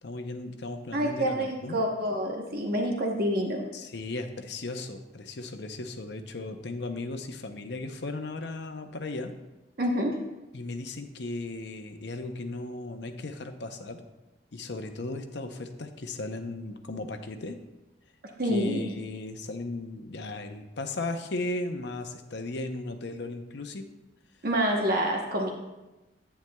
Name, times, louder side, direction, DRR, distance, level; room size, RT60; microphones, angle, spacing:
voice 1, 0.0-1.8 3.7-9.3 10.5-14.0 14.5-17.6 18.4-23.9, left 2 dB, 65° left, 6 dB, 0.7 m, -36 dB
voice 2, 0.9-3.6 9.8-10.2 18.4-18.9 24.4-25.5, equal, 55° right, 1 dB, 1.0 m, -27 dB
10.0 x 9.2 x 2.3 m, 1.0 s
head